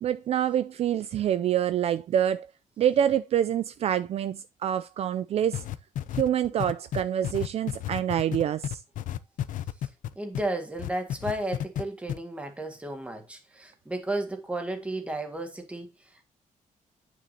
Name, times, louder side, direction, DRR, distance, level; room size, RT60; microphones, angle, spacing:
voice 1, 0.0-2.5 2.8-5.6 6.1-8.8, right 10 dB, 50° right, 0.4 m, -26 dB
sound 1, 5.5-10.5 10.8-11.8 12.1-12.2, left 11 dB, 80° left, 0.6 m, -31 dB
voice 2, 10.2-16.2, right 1 dB, 10° right, 1.9 m, -33 dB
9.4 x 6.1 x 2.8 m
wide cardioid pair, 165°, 13 cm